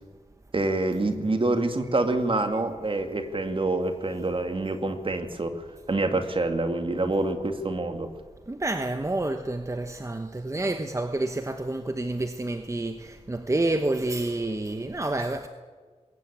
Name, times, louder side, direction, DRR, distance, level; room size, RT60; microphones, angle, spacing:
voice 1, 0.5-8.1, right 2 dB, 45° right, 2.1 m, -26 dB
voice 2, 8.5-15.5, right 2 dB, 25° right, 1.0 m, -29 dB
21.5 x 17.5 x 8.6 m
wide cardioid pair, 100°, 12 cm